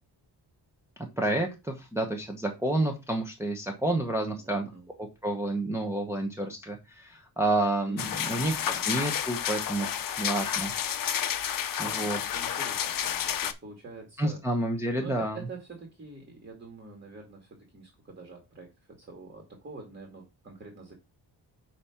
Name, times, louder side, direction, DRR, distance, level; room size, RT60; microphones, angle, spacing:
voice 1, 1.2-4.7 5.2-9.9 10.2-10.7 11.8-12.2 14.2-15.4, right 1 dB, 5° right, 1 dB, 0.8 m, -29 dB
voice 2, 4.2-4.9 7.8-8.9 11.8-14.4 15.0-20.9, right 2 dB, 25° right, 1 dB, 1.7 m, -46 dB
sound 1, 8.0-13.5, left 9 dB, 50° left, 0.6 m, -30 dB
8.1 x 2.8 x 5.7 m, 0.25 s
wide cardioid pair, 175°, 43 cm